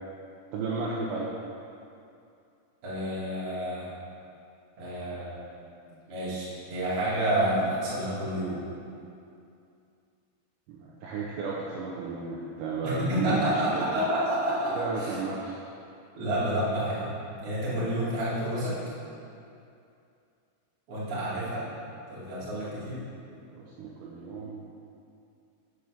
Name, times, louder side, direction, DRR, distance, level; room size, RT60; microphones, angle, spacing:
voice 1, 0.5-1.3 10.7-13.9 14.8-15.6 23.6-24.6, right 4 dB, 80° right, -4 dB, 2.8 m, -33 dB
voice 2, 2.8-3.9 4.8-5.5 6.1-8.6 12.8-15.2 16.2-17.1 17.4-18.8 20.9-21.7 22.1-23.0, right 1 dB, 40° right, -9 dB, 2.3 m, -29 dB
7.0 x 5.9 x 6.5 m, 2.5 s
omnidirectional pair, 5.6 m